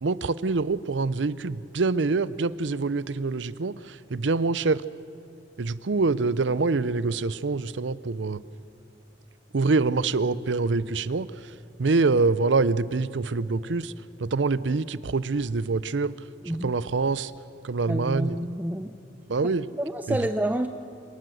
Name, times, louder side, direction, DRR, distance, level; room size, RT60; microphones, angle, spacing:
voice 1, 0.0-4.8 5.6-8.4 9.5-13.9 14.2-16.1 16.5-17.3 17.6-18.5 19.3-19.7 20.1-20.2, right 3 dB, 85° right, 17 dB, 0.6 m, -25 dB
voice 2, 16.4-16.8 17.9-19.0 19.8-20.7, right 1 dB, 10° right, 8 dB, 0.6 m, -28 dB
25.5 x 19.0 x 7.7 m, 2.5 s
head